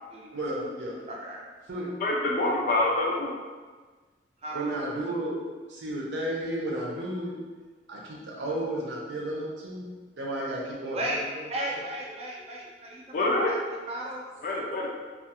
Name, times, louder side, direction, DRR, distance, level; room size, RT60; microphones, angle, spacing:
voice 1, 0.3-1.0 1.7-1.9 4.5-5.4 5.7-7.3 7.9-9.8 10.2-11.4, right 1 dB, 90° right, -3 dB, 0.6 m, -33 dB
voice 2, 1.1-1.4 4.4-4.6 8.3-8.6 10.9-13.6 13.9-14.2, right 1 dB, 35° right, -2 dB, 0.5 m, -35 dB
voice 3, 2.0-3.3 13.1-13.5 14.4-14.9, left 2 dB, 50° left, -2 dB, 0.4 m, -26 dB
2.4 x 2.4 x 2.8 m, 1.4 s
head